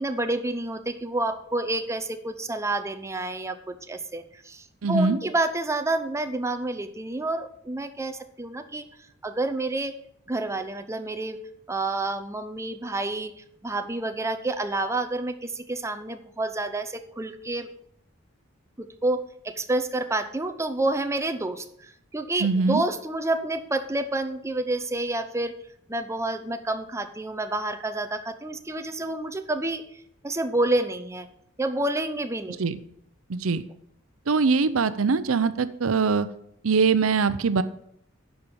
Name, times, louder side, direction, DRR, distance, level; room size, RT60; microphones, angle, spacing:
voice 1, 0.0-8.9 9.2-9.9 10.3-11.4 11.7-17.7 18.8-25.5 25.9-29.9 30.2-31.3 31.6-32.6, right 2 dB, 15° right, 8 dB, 0.6 m, -29 dB
voice 2, 4.8-5.2 22.4-22.8 32.6-32.8 33.3-33.6 34.3-36.3 36.6-37.6, right 4 dB, 85° right, 14 dB, 0.6 m, -22 dB
10.5 x 5.5 x 6.9 m, 0.71 s
head